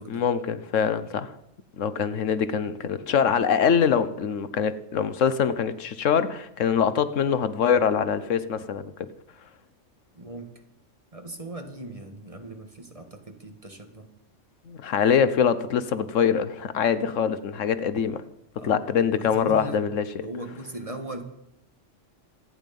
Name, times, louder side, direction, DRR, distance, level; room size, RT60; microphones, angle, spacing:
voice 1, 0.1-1.3 1.8-9.1 14.7-18.2 18.6-20.3, left 7 dB, 80° left, 1.2 m, -24 dB
voice 2, 10.2-10.5 11.1-14.1 18.6-18.8 19.2-19.8 20.2-21.2, right 1 dB, 25° right, 1.9 m, -39 dB
26.0 x 9.4 x 5.4 m
omnidirectional pair, 1.3 m